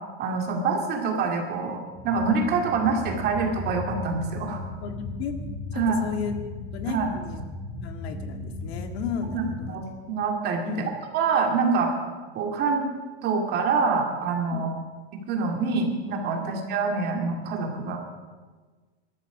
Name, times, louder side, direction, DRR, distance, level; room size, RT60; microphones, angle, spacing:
voice 1, 0.2-4.6 5.7-6.1 6.9-7.1 9.3-10.6 11.1-11.9 12.3-12.9 13.2-14.7 15.1-18.1, right 4 dB, 30° right, 2 dB, 2.4 m, -26 dB
sound 1, 1.9-9.7, left 2 dB, 30° left, 1.7 m, -36 dB
voice 2, 4.8-5.3 6.0-6.4 6.7-7.4 7.8-9.8 10.6-10.9 14.5-14.7 16.4-16.6, left 6 dB, 70° left, 5 dB, 2.1 m, -34 dB
19.5 x 13.0 x 5.0 m, 1.4 s
supercardioid pair, 170°, 33 cm